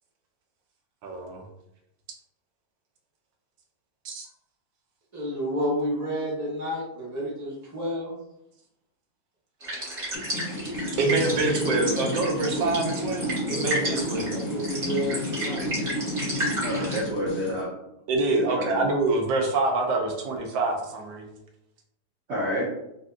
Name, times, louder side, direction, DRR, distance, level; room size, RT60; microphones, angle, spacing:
voice 1, 1.0-1.4 4.0-4.3 10.9-14.3 18.1-21.3, right 3 dB, 90° right, 2 dB, 1.4 m, -26 dB
voice 2, 5.1-8.2 13.5-13.6 14.3-15.7, equal, 15° right, -6 dB, 0.7 m, -30 dB
sound 1, 9.6-17.0, right 1 dB, 35° right, 1.1 m, -33 dB
sound 2, 10.1-17.6, equal, 65° left, 0.8 m, -31 dB
voice 3, 16.6-17.8 18.3-18.8 22.3-22.7, equal, 70° right, -5 dB, 0.6 m, -29 dB
3.4 x 2.6 x 2.4 m, 0.82 s
omnidirectional pair, 1.9 m